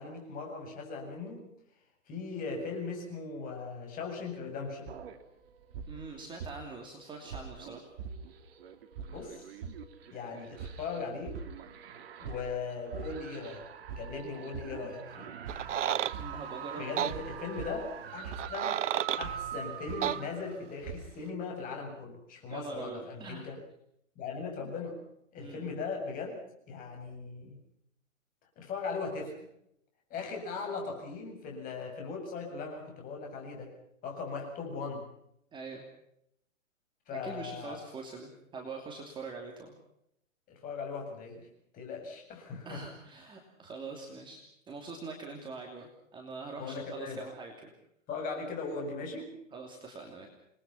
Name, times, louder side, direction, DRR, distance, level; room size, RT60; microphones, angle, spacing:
voice 1, 0.0-1.4 2.1-5.0 9.1-9.5 10.1-11.4 12.2-13.6 14.0-15.3 16.8-18.8 19.2-23.6 24.2-25.0 25.3-26.4 26.7-27.6 28.6-29.4 30.1-33.7 34.0-35.0 37.1-37.8 40.5-41.5 41.7-42.8 46.6-47.2 48.1-49.3, left 4 dB, 20° left, 2 dB, 7.6 m, -39 dB
sound 1, 4.9-6.9 7.2-21.1, right 7 dB, 45° right, 3.0 m, -43 dB
voice 2, 5.9-7.9 16.2-17.0 22.5-23.5 25.4-25.7 35.5-35.8 37.1-39.7 42.6-44.4 44.7-47.7 49.5-50.3, right 4 dB, 10° right, 2 dB, 2.8 m, -43 dB
sound 2, 15.5-16.2 17.0-17.1 18.3-19.3 20.0-20.2, right 11 dB, 65° right, 1.0 m, -31 dB
29.0 x 21.0 x 5.8 m, 0.76 s
hypercardioid pair, 150°, 40 cm